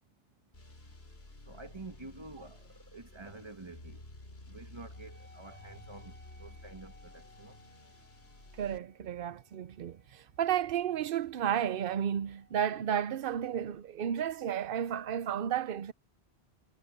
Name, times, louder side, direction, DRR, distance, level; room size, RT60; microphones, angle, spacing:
sound 1, 0.5-8.8, left 2 dB, 65° left, 3.6 m, -52 dB
voice 1, 1.5-2.6 2.9-4.0 4.5-6.1 6.4-7.5, right 3 dB, 25° right, 1.7 m, -48 dB
Wind instrument woodwind instrument, 4.9-13.9, left 3 dB, 35° left, 5.1 m, -63 dB
voice 2, 8.6-15.9, right 9 dB, 60° right, 0.8 m, -32 dB
omnidirectional pair, 1.1 m